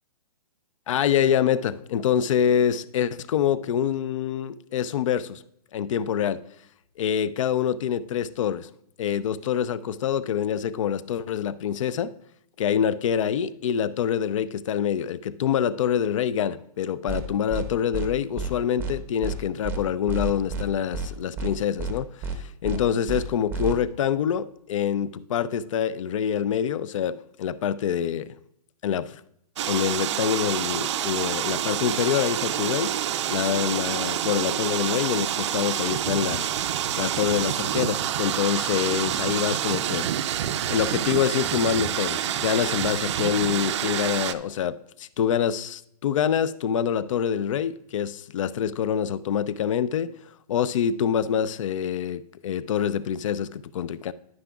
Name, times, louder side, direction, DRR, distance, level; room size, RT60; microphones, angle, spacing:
voice 1, 0.9-5.4 5.7-6.4 7.0-8.7 9.0-12.1 12.6-22.1 22.4-28.3 28.8-29.2 29.7-33.0 33.3-36.5 37.0-40.1 40.7-50.1 50.5-54.1, left 9 dB, 55° left, 0.4 m, -26 dB
sound 1, 17.1-17.2 17.5-17.6 17.9-18.1 18.4-18.5 18.8-18.9 19.2-19.4 19.6-19.8 20.1-20.6 20.9-21.1 21.4-21.5 21.8-21.9 22.2-22.4 22.6-22.8 23.1-23.2 23.5-23.7, right 4 dB, 10° right, 0.7 m, -30 dB
sound 2, 29.6-44.3, right 10 dB, 45° right, 0.4 m, -27 dB
10.5 x 9.7 x 2.3 m
hypercardioid pair, 145°, 20 cm